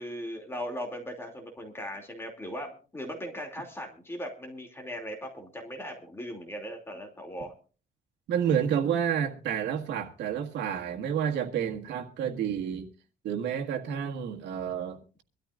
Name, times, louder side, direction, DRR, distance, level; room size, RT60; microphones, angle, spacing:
voice 1, 0.0-7.5, equal, 15° left, 2.7 m, -38 dB
voice 2, 8.3-12.9 13.2-15.2, right 8 dB, 85° right, 1.7 m, -30 dB
24.0 x 13.5 x 2.5 m
cardioid pair, 150°, 18 cm